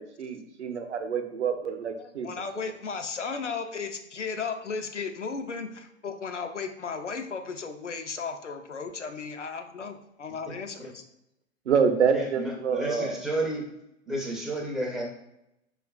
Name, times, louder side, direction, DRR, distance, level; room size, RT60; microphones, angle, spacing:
voice 1, 0.0-2.3 11.7-13.2, right 6 dB, 75° right, 6 dB, 0.6 m, -27 dB
voice 2, 2.0-11.0, left 5 dB, 90° left, 6 dB, 0.5 m, -35 dB
voice 3, 12.1-13.6 14.1-15.0, right 1 dB, ahead, -3 dB, 0.4 m, -31 dB
4.9 x 2.3 x 2.2 m, 0.85 s
figure-of-eight pair, 100°, 35 cm